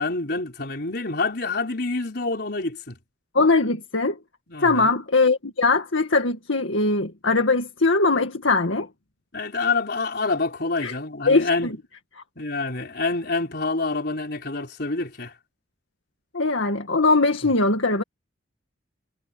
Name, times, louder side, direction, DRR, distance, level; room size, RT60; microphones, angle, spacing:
voice 1, 0.0-3.0 4.5-4.9 9.3-11.7 12.4-15.3, left 3 dB, 55° left, 4.7 m, -27 dB
voice 2, 3.3-4.2 4.6-8.9 10.8-10.9 11.3-11.8 16.3-18.0, left 3 dB, 85° left, 2.0 m, -21 dB
head